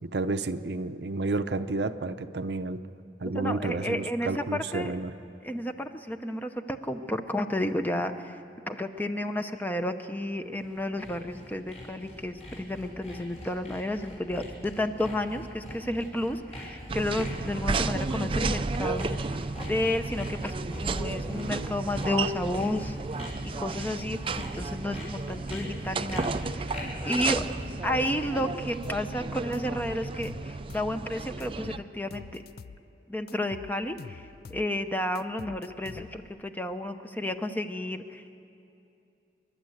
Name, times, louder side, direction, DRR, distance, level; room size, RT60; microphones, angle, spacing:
voice 1, 0.0-2.8 3.2-5.1, right 3 dB, 70° right, 10 dB, 0.7 m, -31 dB
voice 2, 3.3-4.9 5.4-23.2 23.6-26.8 27.0-27.4 27.8-32.4 33.1-38.4, left 1 dB, 10° left, 7 dB, 0.7 m, -32 dB
Sawing, 10.4-28.2, equal, 40° left, 6.0 m, -41 dB
sound 1, 16.9-31.8, right 3 dB, 30° right, 0.4 m, -33 dB
sound 2, 28.8-29.1 29.5-31.0 31.4-32.8 33.3-34.7 35.1-36.4, left 5 dB, 60° left, 0.4 m, -46 dB
28.5 x 12.0 x 7.9 m, 2.7 s
head